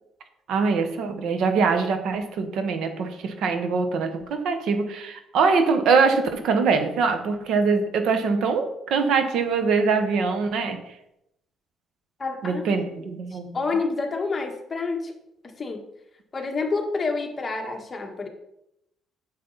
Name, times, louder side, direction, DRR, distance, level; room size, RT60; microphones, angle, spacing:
voice 1, 0.5-10.8 12.4-13.6, right 4 dB, 70° right, 7 dB, 1.1 m, -23 dB
voice 2, 12.2-15.1 15.4-15.8 16.3-18.3, left 4 dB, 25° left, 2 dB, 1.3 m, -29 dB
8.2 x 7.3 x 4.0 m, 0.81 s
cardioid pair, 140°, 0 cm